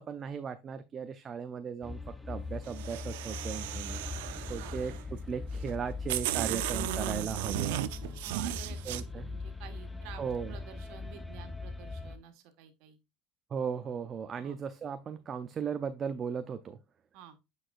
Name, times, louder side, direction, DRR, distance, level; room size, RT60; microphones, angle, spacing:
voice 1, 0.0-2.0 2.3-4.0 4.5-4.9 5.3-7.8 8.9-9.3 10.2-10.6 13.5-16.8, right 6 dB, 30° right, 0.5 m, -37 dB
sound 1, 1.8-12.2, left 3 dB, 10° left, 0.7 m, -40 dB
sound 2, 2.7-5.0 5.7-5.8 6.1-9.0, right 14 dB, 85° right, 0.5 m, -35 dB
voice 2, 8.2-10.2 10.5-13.0 14.4-14.6 17.1-17.4, right 9 dB, 65° right, 1.5 m, -51 dB
8.8 x 4.8 x 2.4 m
supercardioid pair, 130°, 0 cm